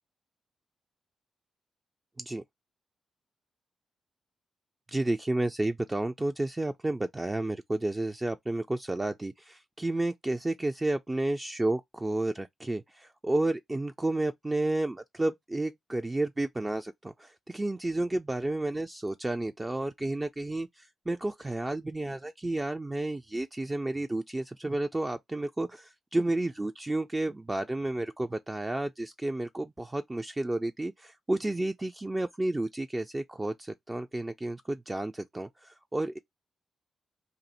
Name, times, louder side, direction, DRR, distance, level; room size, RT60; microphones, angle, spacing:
voice 1, 4.9-36.2, right 2 dB, 25° right, 0.4 m, -31 dB
2.6 x 2.5 x 4.1 m
supercardioid pair, 50°, 0 cm